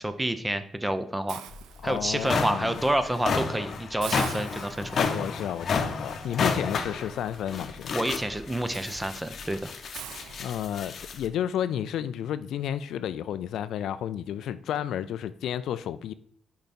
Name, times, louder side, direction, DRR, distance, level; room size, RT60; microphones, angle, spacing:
voice 1, 0.0-1.4 1.8-5.0 7.9-9.7, right 1 dB, 10° right, 0.6 m, -28 dB
Hiss, 1.3-2.4 2.9-3.1 3.4-3.5 4.0-11.1, right 10 dB, 90° right, 0.4 m, -46 dB
sound 1, 1.5-1.6 2.0-11.3, left 5 dB, 55° left, 0.7 m, -31 dB
voice 2, 1.8-2.7 5.0-7.9 10.4-16.1, left 10 dB, 75° left, 0.3 m, -31 dB
6.6 x 4.7 x 4.2 m
cardioid pair, 90°, 0 cm